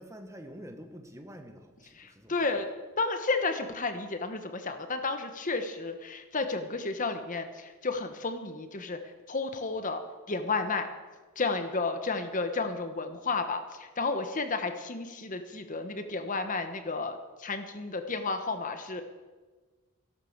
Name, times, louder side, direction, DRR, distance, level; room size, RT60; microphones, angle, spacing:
voice 1, 0.0-2.5, equal, 15° right, 6 dB, 1.2 m, -47 dB
voice 2, 2.0-2.7 3.0-9.0 9.3-10.0 10.3-10.9 11.4-19.0, left 3 dB, 35° left, 7 dB, 1.1 m, -32 dB
15.0 x 12.0 x 7.3 m, 1.3 s
head